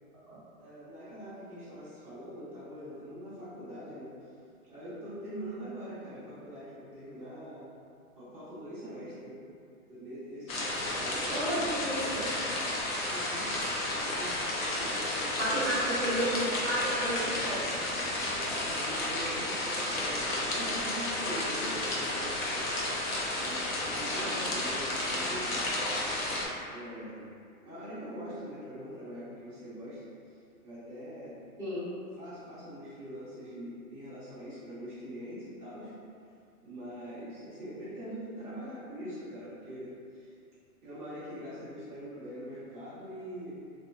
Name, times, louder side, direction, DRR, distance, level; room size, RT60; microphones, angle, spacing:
voice 1, 0.6-4.2 4.7-7.7 8.1-9.5 9.9-11.7 13.0-13.5 13.8-16.2 18.2-22.7 23.3-25.7 26.6-27.3 27.6-31.4 32.2-35.9 36.6-40.3 40.8-43.6, equal, ahead, -22 dB, 0.3 m, -43 dB
sound 1, 10.5-26.5, left 1 dB, 65° left, 0.7 m, -32 dB
voice 2, 11.3-12.6 15.4-17.7 21.6-21.7 24.1-24.5 31.6-31.8, equal, 15° left, -12 dB, 0.9 m, -32 dB
2.5 x 2.4 x 2.4 m, 2.4 s
hypercardioid pair, 140°, 44 cm